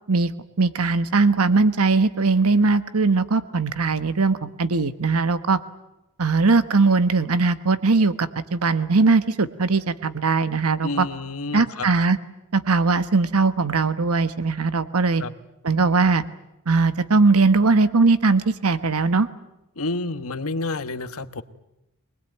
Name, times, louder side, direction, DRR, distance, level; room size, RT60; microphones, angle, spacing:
voice 1, 0.6-5.6 6.2-11.1 11.5-12.2 12.5-15.2 15.6-16.2 16.7-19.3, right 3 dB, 75° right, 12 dB, 1.1 m, -20 dB
voice 2, 10.8-11.9 15.2-15.3 19.7-21.4, left 2 dB, 70° left, 11 dB, 1.2 m, -29 dB
24.0 x 20.5 x 9.1 m, 0.91 s
head